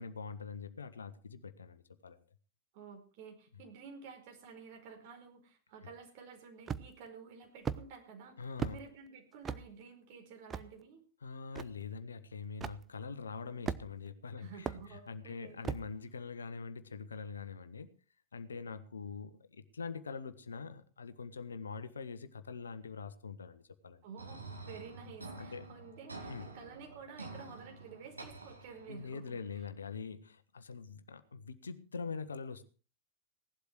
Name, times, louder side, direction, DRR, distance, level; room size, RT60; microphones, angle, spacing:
voice 1, 0.0-2.2 8.4-8.8 11.2-17.9 18.3-24.0 25.4-25.7 26.3-26.5 28.9-32.6, left 5 dB, 70° left, 11 dB, 1.3 m, -44 dB
voice 2, 2.7-11.0 14.4-15.6 24.0-29.6, right 5 dB, 50° right, 3 dB, 4.9 m, -51 dB
sound 1, 6.7-7.1 7.7-7.8 8.6-8.8 9.4-9.6 10.5-10.7 11.6-11.7 12.6-12.8 13.7-14.1 14.7-14.8 15.6-15.9, right 7 dB, 20° right, 0.8 m, -37 dB
sound 2, 24.2-29.2, right 3 dB, 80° right, 3.3 m, -48 dB
17.5 x 12.0 x 4.6 m, 0.37 s
figure-of-eight pair, 90°, 0 cm